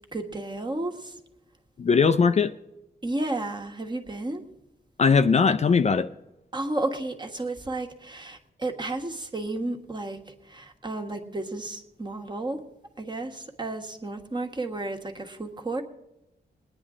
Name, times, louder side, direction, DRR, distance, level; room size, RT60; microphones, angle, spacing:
voice 1, 0.1-1.1 3.0-4.4 6.5-12.6 13.0-15.8, right 2 dB, 25° right, 1.4 m, -32 dB
voice 2, 1.8-2.5 5.0-6.1, left 5 dB, 40° left, 0.4 m, -20 dB
21.0 x 9.7 x 3.7 m
wide cardioid pair, 105°, 17 cm